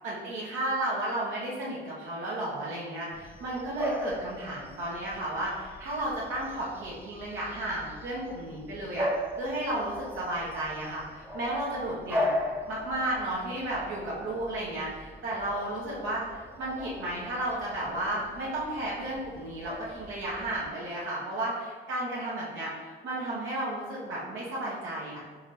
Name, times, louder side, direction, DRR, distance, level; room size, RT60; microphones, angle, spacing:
voice 1, 0.0-9.1 9.3-12.4 12.7-25.2, right 1 dB, 80° right, -6 dB, 0.9 m, -33 dB
Bark / Bird vocalization bird call bird song, 3.1-20.7, left 1 dB, 10° right, 0.6 m, -38 dB
4.1 x 3.1 x 3.9 m, 1.5 s
cardioid pair, 90°, 20 cm